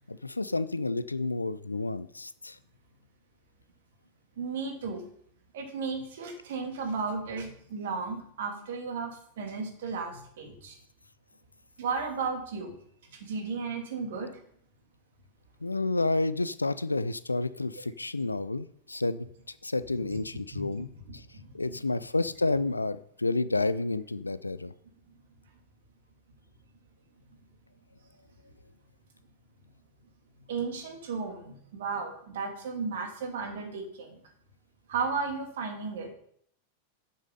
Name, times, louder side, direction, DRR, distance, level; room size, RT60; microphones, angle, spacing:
voice 1, 0.1-2.6 15.6-21.3 21.5-24.7, left 2 dB, 80° left, 16 dB, 0.4 m, -30 dB
voice 2, 4.4-5.0 5.5-10.8 11.8-12.7 13.1-14.3 19.9-20.2 20.5-20.8 21.3-21.9 25.1-25.2 30.5-34.2 34.9-36.1, right 4 dB, 60° right, 3 dB, 2.4 m, -34 dB
8.3 x 7.3 x 5.4 m, 0.65 s
figure-of-eight pair, 90°, 0 cm